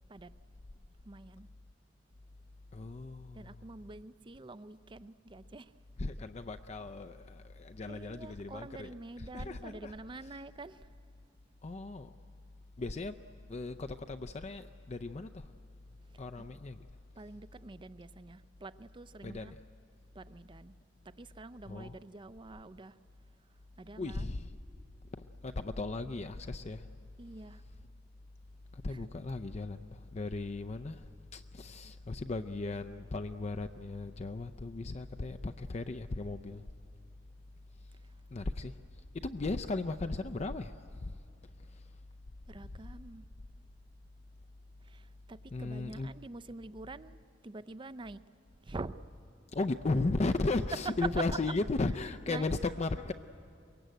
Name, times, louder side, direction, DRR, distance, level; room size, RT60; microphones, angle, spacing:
voice 1, 1.0-1.5 3.3-5.7 7.9-10.9 16.1-16.5 17.2-19.6 20.1-20.7 21.0-23.0 23.8-24.4 27.2-27.6 28.9-29.1 35.2-35.3 38.0-38.1 42.5-43.3 44.8-47.2 47.4-48.2 48.6-49.0 50.7-51.5 52.0-52.8, right 3 dB, 25° right, 15 dB, 0.5 m, -45 dB
voice 2, 2.7-3.6 6.0-8.9 9.3-9.9 11.6-12.1 12.8-13.2 13.5-15.5 16.2-16.9 19.2-19.6 21.7-22.0 24.0-24.5 25.1-26.9 28.7-36.6 38.3-38.8 39.2-41.1 41.7-41.8 45.5-46.1 49.5-53.1, left 3 dB, 35° left, 9 dB, 0.5 m, -36 dB
23.5 x 22.0 x 9.2 m, 2.5 s
head